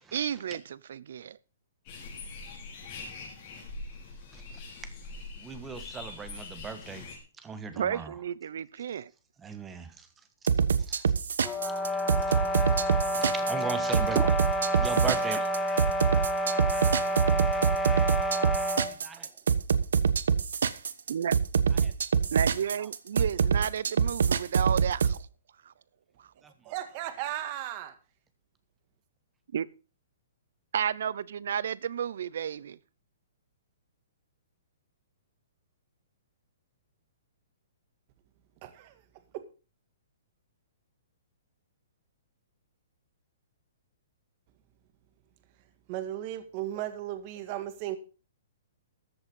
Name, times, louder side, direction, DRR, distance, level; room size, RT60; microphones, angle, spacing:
voice 1, 0.1-1.4 7.8-9.1 21.1-21.4 22.3-25.3 25.6-25.7 26.2-26.3 29.5-29.7 30.7-32.8, right 8 dB, 65° right, 0.7 m, -32 dB
sound 1, 1.9-7.2, left 3 dB, 35° left, 5.9 m, -43 dB
voice 2, 5.3-7.1 7.4-8.1 9.4-10.1 10.9-11.0 11.7-11.8 12.2-12.4 12.9-14.4 14.7-15.7 18.9-19.3 21.8-21.9 26.4-26.5, right 5 dB, 10° right, 1.5 m, -38 dB
sound 2, 10.5-25.2, right 6 dB, 85° right, 1.1 m, -25 dB
sound 3, 11.4-18.9, equal, 10° left, 1.3 m, -29 dB
voice 3, 26.6-27.9 38.6-39.0 39.3-39.4 45.6-48.0, right 13 dB, 35° right, 1.7 m, -36 dB
14.0 x 7.9 x 5.4 m
hypercardioid pair, 160°, 0 cm